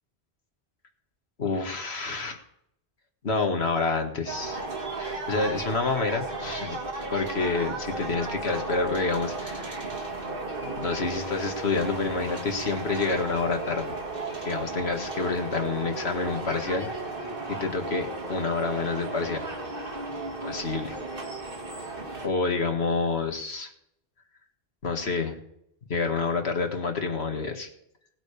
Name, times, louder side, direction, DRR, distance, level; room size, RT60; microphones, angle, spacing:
voice 1, 1.4-2.4 3.2-4.6 5.0-6.8 7.1-9.7 10.6-13.9 14.4-16.9 17.5-19.5 20.4-20.9 22.2-23.7 24.8-25.4 25.9-27.7, left 4 dB, 90° left, 4 dB, 2.1 m, -28 dB
sound 1, 4.3-22.3, right 3 dB, 60° right, 2.2 m, -34 dB
19.0 x 9.3 x 3.4 m, 0.75 s
omnidirectional pair, 1.0 m